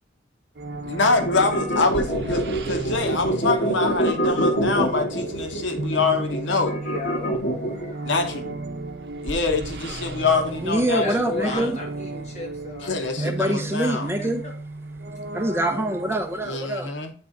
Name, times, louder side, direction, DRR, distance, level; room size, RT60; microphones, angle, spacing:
sound 1, 0.6-16.5, right 2 dB, 60° right, 0.7 m, -34 dB
voice 1, 0.8-6.8 8.0-8.6 9.2-11.1 11.4-11.7 12.8-14.1 16.4-17.1, left 3 dB, 85° left, 0.9 m, -25 dB
sound 2, 1.2-7.9, right 1 dB, 65° left, 1.6 m, -25 dB
voice 2, 6.8-8.1 10.1-10.2 10.9-14.5 16.5-16.6, left 1 dB, 40° left, 1.8 m, -35 dB
voice 3, 10.6-11.8 13.2-14.4 15.3-16.9, right 1 dB, 15° right, 0.5 m, -25 dB
8.6 x 3.6 x 3.8 m
head